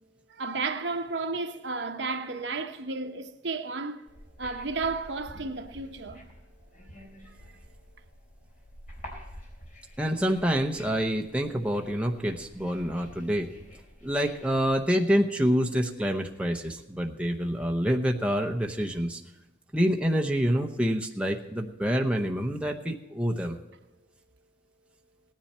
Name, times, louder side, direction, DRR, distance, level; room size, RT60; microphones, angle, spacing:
voice 1, 0.3-4.0 4.4-6.3, right 3 dB, 65° right, 1.0 m, -33 dB
sound 1, 4.1-14.7, equal, 45° left, 3.8 m, -49 dB
voice 2, 10.0-13.5 14.0-19.2 19.7-23.6, equal, 5° right, 0.8 m, -27 dB
17.5 x 10.5 x 4.3 m
head